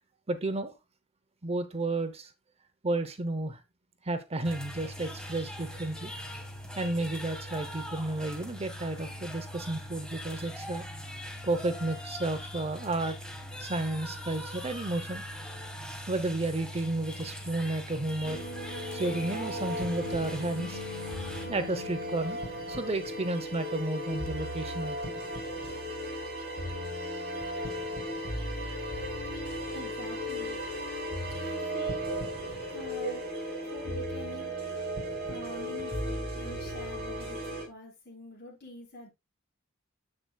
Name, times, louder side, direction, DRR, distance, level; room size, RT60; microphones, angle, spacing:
voice 1, 0.3-0.7 1.4-2.3 2.8-3.6 4.0-6.1 6.8-10.8 11.4-13.2 13.6-15.2 16.1-18.4 18.9-20.8 21.5-22.4 22.7-25.1 27.1-27.2, right 2 dB, 30° right, 0.8 m, -32 dB
sound 1, 4.4-21.5, equal, 5° left, 1.6 m, -41 dB
sound 2, 18.2-37.6, equal, 50° right, 5.8 m, -36 dB
voice 2, 29.7-30.6 31.3-32.1 32.7-34.5 35.3-39.1, left 1 dB, 50° left, 5.4 m, -46 dB
9.8 x 8.0 x 2.3 m
head